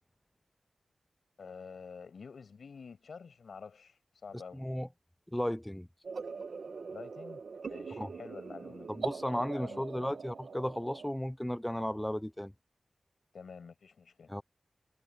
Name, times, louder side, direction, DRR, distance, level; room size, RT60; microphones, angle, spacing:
voice 1, 1.4-4.6 6.9-9.0 9.5-10.2 13.3-14.3, left 5 dB, 75° left, 6.3 m, -49 dB
voice 2, 4.5-4.9 5.3-5.9 8.0-8.1 9.0-12.5 14.3-14.4, equal, 5° left, 0.4 m, -34 dB
sound 1, 6.0-11.1, right 5 dB, 70° right, 1.0 m, -42 dB
wide cardioid pair, 75°, 0 cm